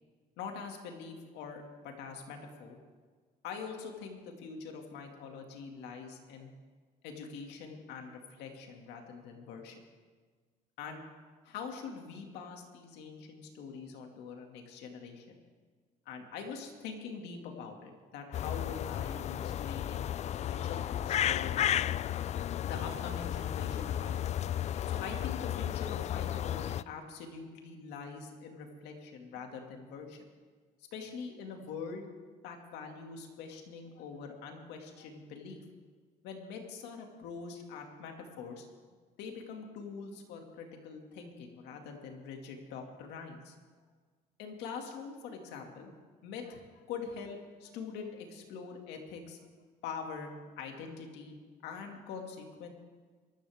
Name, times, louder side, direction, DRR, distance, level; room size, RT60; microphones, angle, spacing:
voice 1, 0.4-2.8 3.4-6.5 7.0-9.8 10.8-11.0 11.4-15.4 16.1-20.1 20.4-21.5 22.6-24.2 24.9-30.2 30.9-32.0 32.4-35.6 36.2-38.7 39.2-43.5 44.4-45.9 46.2-49.4 49.8-51.4 51.6-52.7, left 5 dB, 90° left, 3 dB, 2.3 m, -44 dB
sound 1, 18.3-26.8, left 11 dB, 40° left, 0.4 m, -33 dB
23.0 x 13.5 x 3.6 m, 1.5 s
cardioid pair, 110°, 17 cm